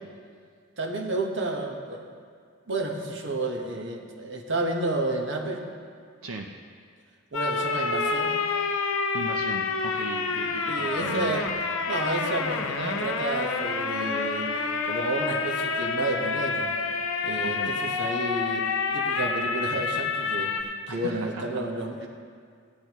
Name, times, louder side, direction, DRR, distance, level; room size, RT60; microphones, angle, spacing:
voice 1, 0.8-2.0 2.7-5.6 7.3-8.3 10.7-11.5 11.9-16.7 17.2-22.1, right 2 dB, 60° right, 2 dB, 1.2 m, -31 dB
sound 1, 7.3-20.6, left 4 dB, 70° left, 0.8 m, -28 dB
voice 2, 9.1-11.6 17.4-17.7 20.9-21.4, right 2 dB, 90° right, 2 dB, 0.7 m, -37 dB
16.5 x 10.0 x 3.1 m, 2.1 s
head